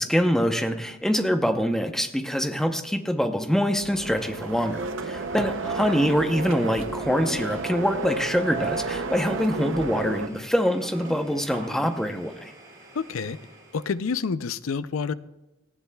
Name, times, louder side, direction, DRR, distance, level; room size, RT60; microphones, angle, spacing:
voice 1, 0.0-12.5, equal, ahead, 6 dB, 0.8 m, -25 dB
sound 1, 3.7-10.3, right 3 dB, 75° right, 0.6 m, -32 dB
Domestic sounds home sounds, 4.2-14.1, right 1 dB, 15° right, 5.4 m, -50 dB
voice 2, 5.4-5.7 12.9-13.4 13.7-15.1, left 5 dB, 90° left, 15 dB, 0.5 m, -29 dB
sound 2, 6.9-7.9 8.5-12.0, right 1 dB, 40° right, 2.2 m, -42 dB
18.5 x 15.0 x 2.3 m, 1.0 s
head